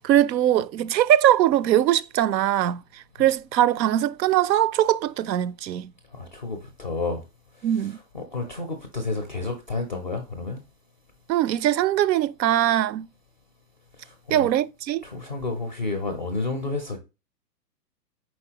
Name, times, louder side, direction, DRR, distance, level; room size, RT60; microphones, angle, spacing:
voice 1, 0.0-2.8 3.2-5.9 7.6-8.0 11.3-13.1 14.3-15.0, right 12 dB, 90° right, 0.5 m, -21 dB
voice 2, 6.1-7.2 7.6-10.6 14.0-14.5 15.0-17.0, left 3 dB, 30° left, 0.4 m, -31 dB
4.3 x 4.1 x 2.8 m
hypercardioid pair, 155°, 49 cm